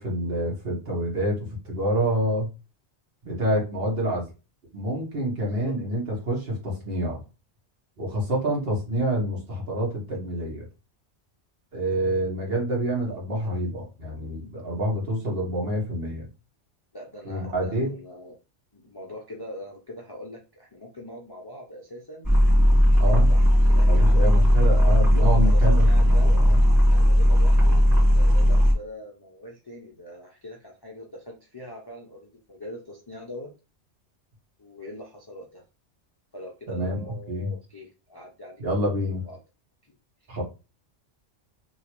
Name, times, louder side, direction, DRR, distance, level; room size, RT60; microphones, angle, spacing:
voice 1, 0.0-1.4 1.6-2.5 3.2-4.2 4.7-7.2 8.0-10.7 11.7-16.3 17.2-17.9 23.0-23.3 23.9-26.6 36.7-37.5 38.6-39.2 40.3-40.4, right 1 dB, 55° right, -2 dB, 1.4 m, -27 dB
voice 2, 16.9-18.3 18.7-22.3 23.2-26.3 26.9-33.5 34.6-35.6 36.3-38.6 39.1-39.4, equal, 30° left, -1 dB, 0.5 m, -42 dB
sound 1, 22.2-28.7, equal, 20° right, 1.4 m, -17 dB
2.9 x 2.9 x 2.9 m, 0.30 s
omnidirectional pair, 1.2 m